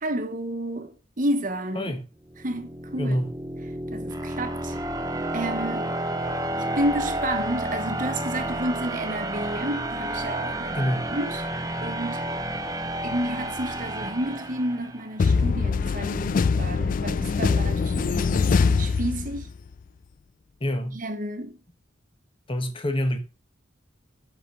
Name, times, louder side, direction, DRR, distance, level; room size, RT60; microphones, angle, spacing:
voice 1, 0.0-2.0 2.4-3.2 3.9-4.8 5.3-6.0 6.7-11.4 11.8-12.2 13.0-19.5 20.9-21.6, right 1 dB, 45° right, 1.2 m, -31 dB
sound 1, 2.3-15.2, right 1 dB, 20° right, 0.8 m, -31 dB
voice 2, 3.0-3.3 10.7-11.1 20.6-21.0 22.5-23.2, equal, 30° left, 1.2 m, -26 dB
sound 2, 15.2-19.7, left 5 dB, 45° left, 0.3 m, -23 dB
6.1 x 6.0 x 6.6 m
head